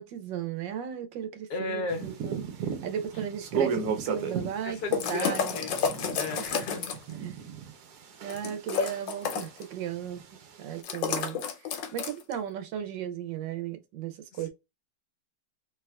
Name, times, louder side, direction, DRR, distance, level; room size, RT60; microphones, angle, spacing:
voice 1, 0.0-5.6 6.2-6.5 7.2-7.4 8.2-10.2 10.6-14.5, right 9 dB, 85° right, 1.4 m, -36 dB
voice 2, 1.5-2.1 4.6-5.8 6.1-6.9, left 2 dB, 65° left, 1.2 m, -34 dB
sound 1, 1.9-8.6 8.9-10.8, right 6 dB, 65° right, 1.1 m, -35 dB
sound 2, 4.9-7.1 8.3-9.6 10.8-12.3, left 7 dB, 85° left, 1.4 m, -30 dB
3.5 x 2.7 x 2.3 m
omnidirectional pair, 2.0 m